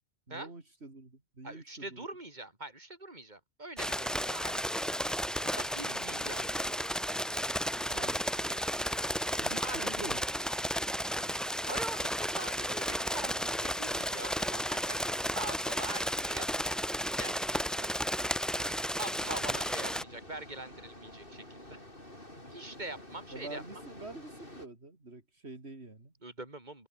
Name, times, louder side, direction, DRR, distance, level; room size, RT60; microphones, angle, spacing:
voice 1, 0.3-2.1 7.9-8.6 9.4-10.2 23.3-26.1, right 2 dB, 75° right, 4.0 m, -46 dB
voice 2, 1.4-4.6 5.4-6.9 7.8-8.0 9.2-10.0 11.2-16.8 17.2-17.9 18.5-21.8 22.5-23.6 26.2-26.9, right 2 dB, 45° right, 4.7 m, -44 dB
sound 1, 3.8-20.0, equal, ahead, 0.5 m, -33 dB
sound 2, 19.1-24.7, left 1 dB, 55° left, 7.9 m, -49 dB
omnidirectional pair, 1.1 m